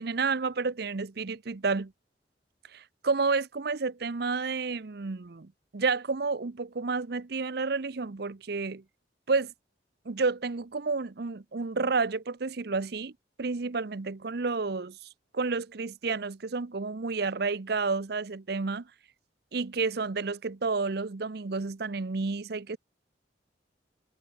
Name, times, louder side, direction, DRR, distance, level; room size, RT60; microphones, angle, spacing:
voice 1, 0.0-1.9 2.7-8.8 9.3-9.5 10.1-13.1 13.4-15.0 15.3-18.9 19.5-22.8, right 4 dB, 60° right, 0.7 m, -30 dB
head